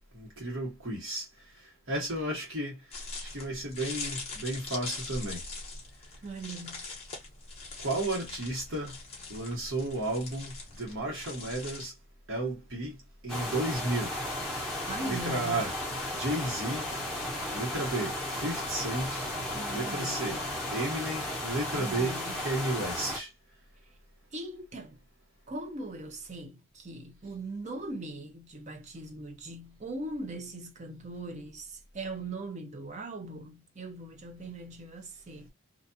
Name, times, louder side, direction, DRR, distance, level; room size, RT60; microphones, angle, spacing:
voice 1, 0.1-1.2 1.9-2.8 3.2-5.4 7.8-8.9 9.3-11.9 12.3-13.0 13.2-14.1 15.0-15.7 16.2-16.9 17.5-19.3 19.7-20.4 20.7-23.3, right 1 dB, 70° right, 1.2 m, -33 dB
sound 1, 2.9-11.9, left 3 dB, 30° left, 0.8 m, -42 dB
voice 2, 6.2-6.9 14.8-15.7 19.5-20.4 21.8-22.5 24.3-25.0 25.5-35.5, right 2 dB, 35° right, 0.5 m, -40 dB
sound 2, 13.3-23.2, left 1 dB, ahead, 0.9 m, -34 dB
2.5 x 2.3 x 2.6 m
head